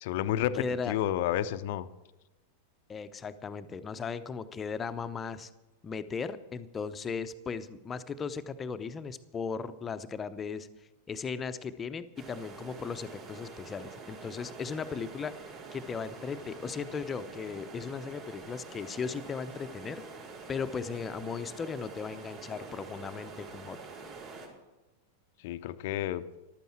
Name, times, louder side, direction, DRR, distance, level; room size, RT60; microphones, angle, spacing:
voice 1, 0.0-1.9 25.4-26.2, left 12 dB, 50° left, 13 dB, 0.7 m, -31 dB
voice 2, 0.5-0.9 2.9-5.5 5.8-10.7 11.1-15.3 15.7-20.0 20.5-23.8, left 5 dB, 20° left, 11 dB, 0.8 m, -37 dB
sound 1, 12.2-24.5, right 4 dB, 40° right, 4.7 m, -46 dB
15.0 x 12.0 x 4.5 m, 1.1 s
figure-of-eight pair, 90°, 0 cm